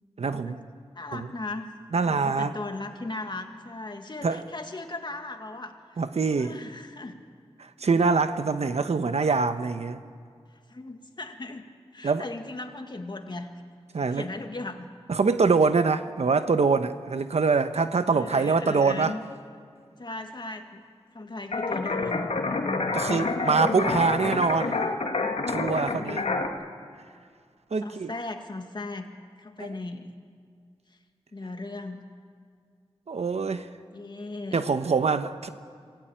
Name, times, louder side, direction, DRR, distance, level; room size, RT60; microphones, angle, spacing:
voice 1, 0.2-0.6 1.1-1.3 1.9-2.5 4.2-4.4 6.0-6.6 7.6-10.0 12.0-12.2 13.9-14.3 15.1-19.2 22.9-24.8 25.5-26.2 27.7-28.1 33.1-33.7 34.5-35.5, right 4 dB, 85° right, 10 dB, 1.0 m, -24 dB
voice 2, 0.9-1.7 2.1-5.7 6.4-7.2 10.5-11.7 11.9-13.5 14.0-14.9 18.1-19.2 20.0-20.8 21.1-22.9 23.9-24.6 25.9-26.5 27.8-29.1 29.4-30.1 31.3-32.0 33.9-34.6, left 2 dB, 45° left, 5 dB, 1.9 m, -37 dB
sound 1, 21.5-26.5, left 3 dB, 85° left, 1.8 m, -28 dB
26.5 x 17.0 x 8.9 m, 2.1 s
wide cardioid pair, 90°, 11 cm